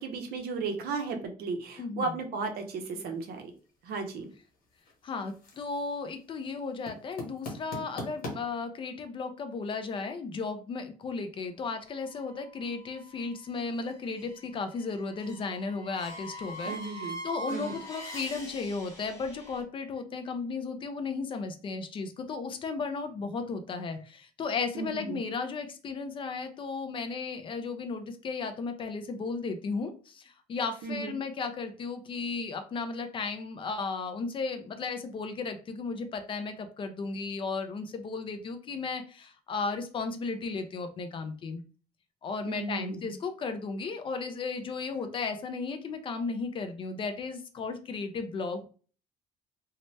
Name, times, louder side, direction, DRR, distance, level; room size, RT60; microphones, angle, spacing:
voice 1, 0.0-3.5 3.8-4.3 16.7-17.2 17.5-17.8 24.7-25.2 30.8-31.2 42.5-43.1, right 4 dB, 70° right, 5 dB, 0.7 m, -35 dB
voice 2, 1.8-2.1 5.0-41.6 42.2-48.6, left 4 dB, 30° left, 8 dB, 0.3 m, -35 dB
sound 1, 2.6-8.3, left 2 dB, 65° left, 1.2 m, -45 dB
sound 2, 11.9-19.6, equal, 15° left, 1.1 m, -44 dB
2.7 x 2.1 x 3.1 m, 0.38 s
cardioid pair, 170°, 16 cm